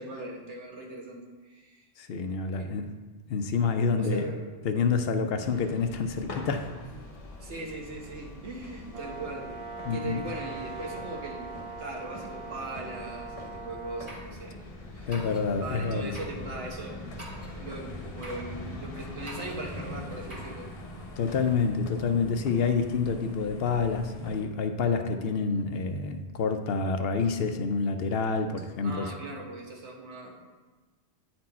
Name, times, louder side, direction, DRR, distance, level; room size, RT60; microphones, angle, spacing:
voice 1, 0.0-1.8 2.5-2.7 4.0-4.4 7.4-9.5 9.9-14.6 14.9-17.0 17.6-20.7 28.8-30.4, right 2 dB, 85° right, 0 dB, 1.5 m, -40 dB
voice 2, 2.0-2.9 3.3-4.2 4.6-6.7 9.9-10.2 15.1-16.2 21.2-29.1, left 5 dB, 65° left, 7 dB, 0.8 m, -28 dB
sound 1, 5.4-24.4, left 1 dB, 35° left, 0.8 m, -43 dB
Brass instrument, 8.9-14.2, right 4 dB, 65° right, 1.2 m, -41 dB
sound 2, 14.1-14.3 15.1-15.5 16.1-16.4 17.2-17.6 18.2-18.5 19.3-19.6 20.3-20.6, right 1 dB, 35° right, 1.9 m, -44 dB
9.5 x 4.4 x 4.2 m, 1.3 s
omnidirectional pair, 1.1 m